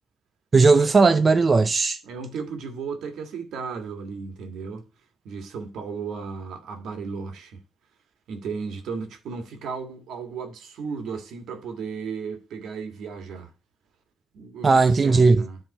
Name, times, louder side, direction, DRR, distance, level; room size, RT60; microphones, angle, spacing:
voice 1, 0.5-2.0 14.6-15.5, right 4 dB, 35° right, 0.4 m, -17 dB
voice 2, 2.0-4.9 5.2-7.6 8.3-13.5 14.3-15.6, right 5 dB, 75° right, 1.6 m, -35 dB
10.0 x 3.6 x 5.2 m
cardioid pair, 90°, 0 cm